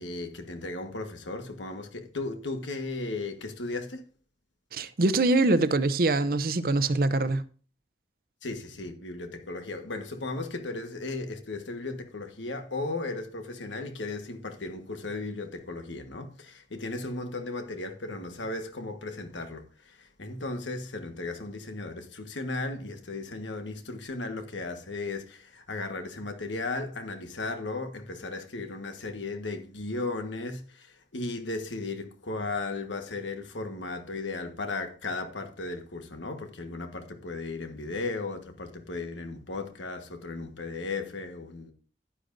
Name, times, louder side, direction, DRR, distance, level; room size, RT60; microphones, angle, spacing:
voice 1, 0.0-4.0 8.4-41.7, left 3 dB, 90° left, 1.4 m, -36 dB
voice 2, 4.7-7.4, right 2 dB, 50° right, 0.6 m, -24 dB
11.5 x 10.0 x 2.6 m
head